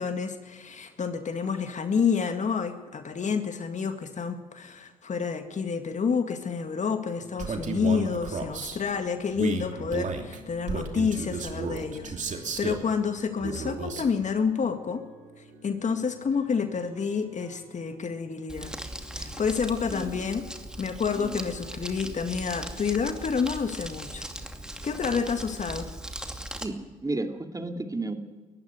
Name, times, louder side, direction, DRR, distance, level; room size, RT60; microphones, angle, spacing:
voice 1, 0.0-15.0 15.6-18.7 19.2-20.5 20.8-24.2 24.8-25.9, left 6 dB, 45° left, 7 dB, 2.0 m, -29 dB
sound 1, 6.3-25.8, equal, 85° right, 4.3 m, -52 dB
Male speech man speaking, 7.4-8.8 9.3-12.9 13.4-14.1, right 5 dB, 50° right, 2.9 m, -33 dB
Crumpling crinkling, 18.5-26.7, right 1 dB, 5° right, 2.6 m, -39 dB
voice 2, 19.9-20.3 21.1-21.4 26.6-28.1, right 2 dB, 20° right, 4 dB, 2.8 m, -33 dB
20.0 x 14.5 x 9.3 m, 1.3 s
hypercardioid pair, 45°, 17 cm